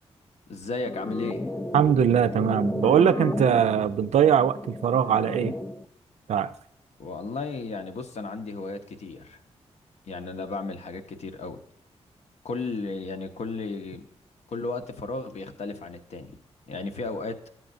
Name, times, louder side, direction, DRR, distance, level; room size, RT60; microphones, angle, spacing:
voice 1, 0.5-1.5 7.0-9.4 10.1-11.6 12.4-14.1 14.5-16.3 16.7-17.4, left 3 dB, 70° left, 0.8 m, -34 dB
sound 1, 0.9-5.9, left 1 dB, 10° left, 0.4 m, -33 dB
voice 2, 1.7-5.5 6.3-6.5, right 8 dB, 75° right, 0.4 m, -21 dB
12.0 x 7.5 x 2.6 m
cardioid pair, 80°, 12 cm